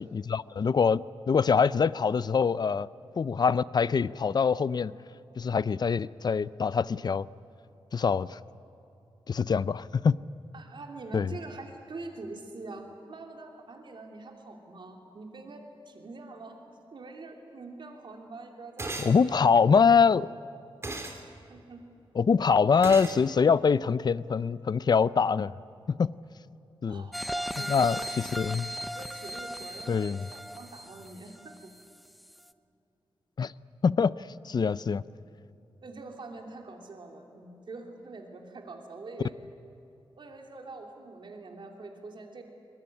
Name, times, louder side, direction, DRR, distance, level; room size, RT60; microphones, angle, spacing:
voice 1, 0.0-2.9 3.2-4.9 5.4-7.3 7.9-8.4 9.3-10.2 11.1-11.3 19.0-20.3 22.2-25.5 25.9-26.1 26.8-27.1 27.7-28.7 29.9-30.2 33.4-33.5 33.8-34.2 34.4-35.0, left 6 dB, 50° left, 18 dB, 0.5 m, -24 dB
voice 2, 10.5-16.6 16.9-19.5 21.5-21.8 26.9-28.2 28.5-31.6 35.8-39.3 40.2-42.4, right 3 dB, 60° right, 2 dB, 3.0 m, -45 dB
sound 1, 18.8-19.2 20.8-21.2 22.8-23.2, right 2 dB, 30° right, 2.7 m, -35 dB
sound 2, 27.1-31.9 32.3-32.4, equal, ahead, 0.8 m, -37 dB
22.0 x 20.5 x 9.7 m, 2.8 s
wide cardioid pair, 105°, 9 cm